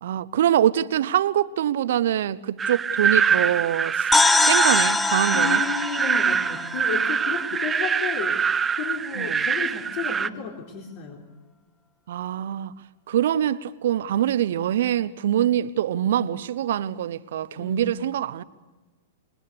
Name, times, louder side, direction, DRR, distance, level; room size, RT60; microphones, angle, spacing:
voice 1, 0.0-4.1 4.5-5.6 9.2-9.4 12.1-12.7 13.1-18.4, right 11 dB, 65° right, 0.9 m, -24 dB
sound 1, 2.6-10.3, right 6 dB, 15° right, 0.9 m, -24 dB
sound 2, 4.1-7.7, left 3 dB, 10° left, 0.8 m, -23 dB
voice 2, 5.2-8.4 8.7-11.3 17.6-17.8, left 7 dB, 50° left, 4.0 m, -32 dB
26.5 x 22.5 x 7.0 m
hypercardioid pair, 110°, 0 cm